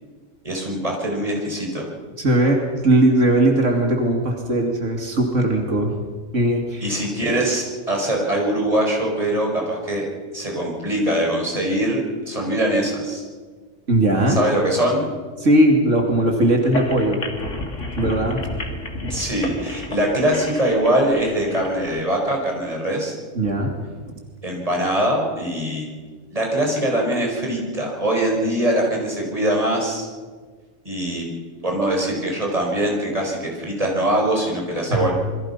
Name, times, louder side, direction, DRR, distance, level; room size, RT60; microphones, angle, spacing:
voice 1, 0.4-1.9 6.8-10.0 10.3-13.2 14.3-15.0 19.1-23.2 24.4-25.9 26.3-30.1 30.9-31.3 31.6-35.1, right 1 dB, 30° right, -1 dB, 5.3 m, -22 dB
voice 2, 2.2-5.9 6.3-7.0 13.9-14.4 15.4-17.2 17.9-18.4 23.3-23.8 34.9-35.1, right 1 dB, 85° right, 2 dB, 3.0 m, -19 dB
sound 1, 16.6-22.0, left 1 dB, 85° left, 2.9 m, -31 dB
27.5 x 23.0 x 5.7 m, 1.5 s
omnidirectional pair, 1.3 m